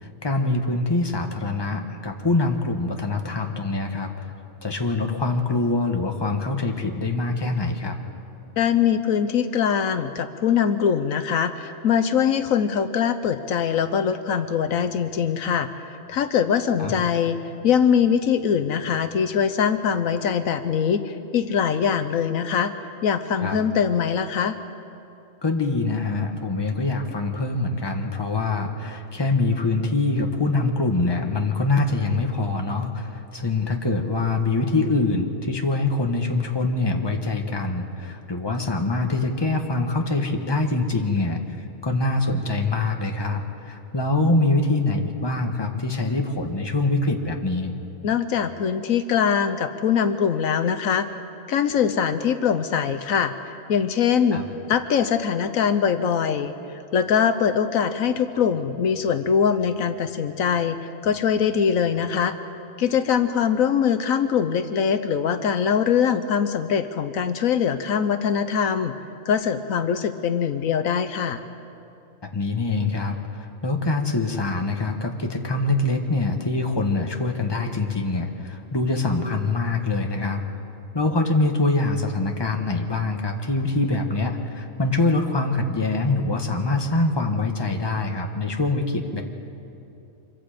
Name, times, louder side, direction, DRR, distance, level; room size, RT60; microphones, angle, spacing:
voice 1, 0.0-4.3 4.6-8.0 16.8-16.9 23.4-23.6 25.4-41.4 41.8-47.7 54.3-54.4 72.2-80.4 80.9-89.2, left 2 dB, 20° left, 3 dB, 1.4 m, -24 dB
voice 2, 8.6-15.7 16.1-17.4 17.6-22.7 23.0-24.6 48.0-51.1 51.5-53.3 53.7-54.4 54.7-56.5 56.9-60.8 61.0-62.3 62.8-68.9 69.3-71.4, left 7 dB, 75° left, 10 dB, 1.2 m, -22 dB
26.5 x 23.5 x 5.1 m, 2.7 s
omnidirectional pair, 1.5 m